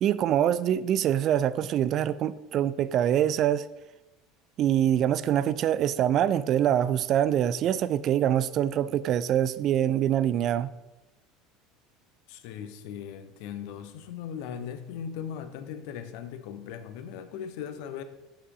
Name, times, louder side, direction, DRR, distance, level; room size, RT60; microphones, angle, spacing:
voice 1, 0.0-3.7 4.6-10.7, right 10 dB, 45° right, 16 dB, 0.4 m, -24 dB
voice 2, 12.3-18.0, left 8 dB, 60° left, 10 dB, 0.8 m, -38 dB
7.4 x 7.1 x 5.0 m, 1.0 s
figure-of-eight pair, 70°, 0 cm